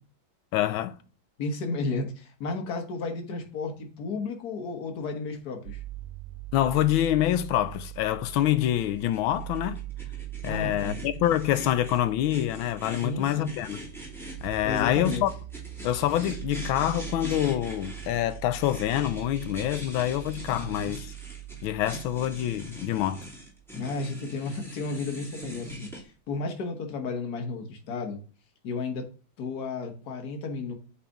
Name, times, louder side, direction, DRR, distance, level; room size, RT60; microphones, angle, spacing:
voice 1, 0.5-1.0 6.5-9.8 10.4-13.8 14.4-15.3 15.8-21.1 21.6-23.3, left 13 dB, 80° left, 1.4 m, -26 dB
voice 2, 1.4-5.8 10.5-11.0 13.0-13.5 14.6-15.2 20.5-20.9 23.7-28.2 28.6-29.1 29.4-30.7, left 3 dB, 55° left, 1.7 m, -33 dB
sound 1, 5.7-23.6, right 15 dB, 85° right, 1.4 m, -41 dB
sound 2, 8.8-26.0, equal, ahead, 2.5 m, -43 dB
8.4 x 4.1 x 3.5 m
omnidirectional pair, 2.2 m